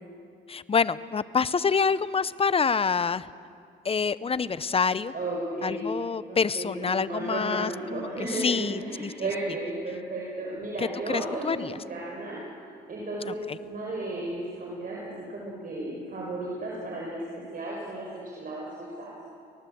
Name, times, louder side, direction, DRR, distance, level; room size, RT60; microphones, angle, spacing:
voice 1, 0.5-3.3 3.8-5.1 5.6-9.1 10.8-11.8 13.2-13.6, left 5 dB, 30° left, 16 dB, 0.7 m, -27 dB
voice 2, 5.1-5.8 6.3-11.6 11.9-17.2 17.5-19.1, right 2 dB, 45° right, -3 dB, 5.6 m, -34 dB
24.5 x 19.0 x 7.8 m, 2.4 s
cardioid pair, 90°, 20 cm